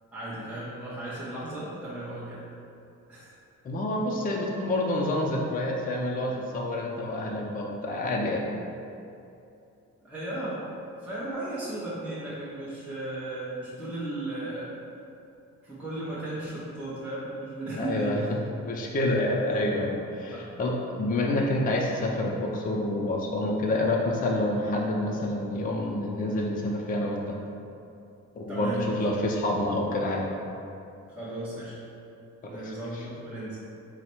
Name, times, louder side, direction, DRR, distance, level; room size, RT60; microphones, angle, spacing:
voice 1, 0.1-2.4 3.1-3.3 10.0-10.7 11.0-14.7 15.6-18.4 20.3-20.5 28.5-29.0 31.1-31.8 32.5-33.6, right 1 dB, 5° right, -11 dB, 0.8 m, -35 dB
voice 2, 3.6-8.4 17.8-18.2 18.6-27.3 28.4-30.3 32.5-33.1, left 1 dB, 30° left, -1 dB, 0.5 m, -28 dB
4.0 x 2.1 x 4.4 m, 2.7 s
cardioid pair, 90°, 30 cm